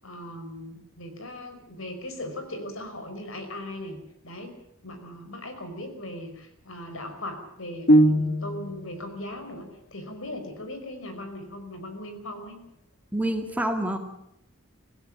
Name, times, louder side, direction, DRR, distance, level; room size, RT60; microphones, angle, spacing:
voice 1, 0.0-4.0 4.2-4.5 4.8-12.6, left 1 dB, 70° left, 7 dB, 5.3 m, -38 dB
sound 1, 7.9-8.9, right 1 dB, 50° left, 1.4 m, -20 dB
voice 2, 13.1-14.0, right 1 dB, 5° right, 5 dB, 2.1 m, -27 dB
25.5 x 16.5 x 7.0 m, 0.80 s
head